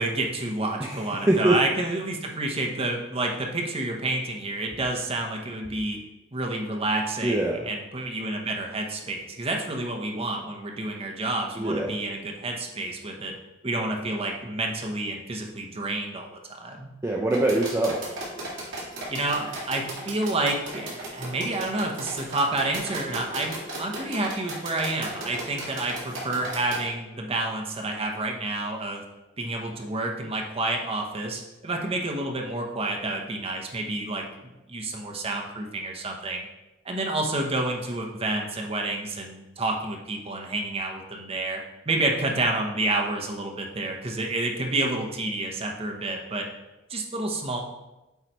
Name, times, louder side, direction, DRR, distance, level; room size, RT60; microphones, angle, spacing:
voice 1, 0.0-6.0 6.3-13.4 13.6-16.9 19.1-29.0 29.4-36.5 36.8-46.5 46.9-47.6, right 2 dB, 30° right, 1 dB, 0.9 m, -29 dB
voice 2, 0.8-1.6 7.2-7.7 11.6-12.0 17.0-18.0, right 1 dB, 15° right, -2 dB, 0.5 m, -24 dB
sound 1, 17.3-26.8, right 1 dB, 65° right, 2.2 m, -35 dB
8.1 x 3.2 x 4.5 m, 0.99 s
head